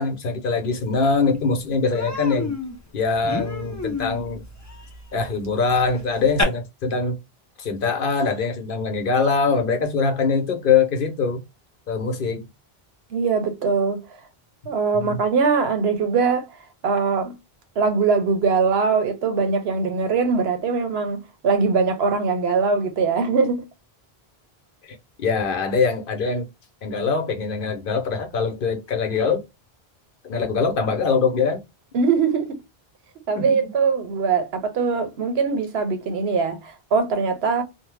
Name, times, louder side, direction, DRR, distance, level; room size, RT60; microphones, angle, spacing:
voice 1, 0.0-2.6 2.9-4.4 5.1-7.1 7.6-11.4 11.9-12.4 24.8-26.5 26.8-29.4 30.2-31.6 33.4-33.7, left 5 dB, 60° left, 0.8 m, -23 dB
Human voice, 0.9-1.0 1.3-1.5 1.9-6.4, left 3 dB, 25° left, 0.4 m, -31 dB
voice 2, 13.1-14.0 14.6-16.5 16.8-17.4 17.8-23.6 31.9-32.6 33.3-37.6, right 5 dB, 80° right, 0.9 m, -22 dB
2.7 x 2.1 x 3.1 m
omnidirectional pair, 1.0 m